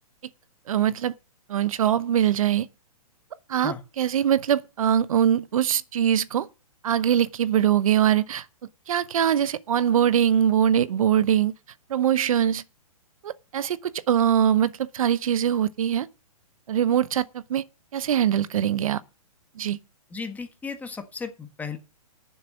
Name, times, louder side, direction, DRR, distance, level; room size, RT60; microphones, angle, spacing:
voice 1, 0.7-1.1 1.5-2.7 3.5-6.5 6.8-8.4 8.9-11.5 11.9-12.6 13.2-16.1 16.7-17.6 17.9-19.0 19.6-19.8, right 9 dB, 60° right, 0.8 m, -22 dB
voice 2, 20.1-21.8, left 5 dB, 10° left, 1.5 m, -35 dB
10.5 x 7.2 x 7.3 m
hypercardioid pair, 135°, 19 cm